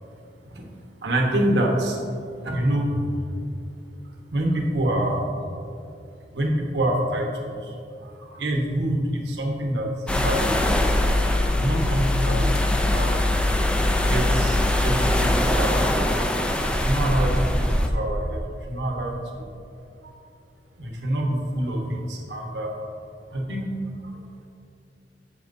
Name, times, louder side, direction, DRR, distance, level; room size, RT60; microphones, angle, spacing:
voice 1, 1.0-2.0 2.4-3.0 4.3-5.2 6.3-7.7 8.3-9.9 10.2-11.0 11.2-13.2 14.1-16.0 16.7-18.4 18.7-19.8 20.8-22.7 23.3-23.6, right 1 dB, 75° right, 0 dB, 1.1 m, -26 dB
sound 1, 10.1-15.4, left 2 dB, 40° left, 0.7 m, -25 dB
sound 2, 10.1-17.9, equal, 5° left, 0.4 m, -24 dB
10.5 x 7.1 x 2.7 m, 2.5 s
head